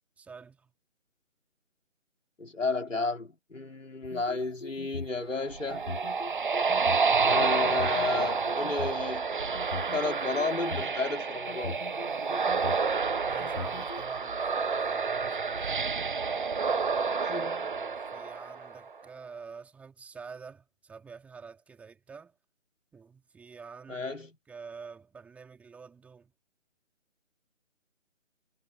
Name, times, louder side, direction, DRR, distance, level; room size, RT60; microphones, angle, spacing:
voice 1, 0.2-0.7 13.3-15.9 17.4-22.3 22.9-24.2 24.5-26.3, right 5 dB, 5° right, 3.8 m, -47 dB
voice 2, 2.4-5.8 7.2-9.5 9.9-11.8 17.2-17.7 23.9-24.4, left 3 dB, 75° left, 4.6 m, -32 dB
sound 1, 4.0-5.2 5.7-7.0 7.6-8.9 9.6-10.9 11.5-12.9 13.4-14.0, left 4 dB, 55° left, 5.6 m, -40 dB
sound 2, 5.3-18.9, right 5 dB, 40° right, 1.1 m, -29 dB
figure-of-eight pair, 155°, 39 cm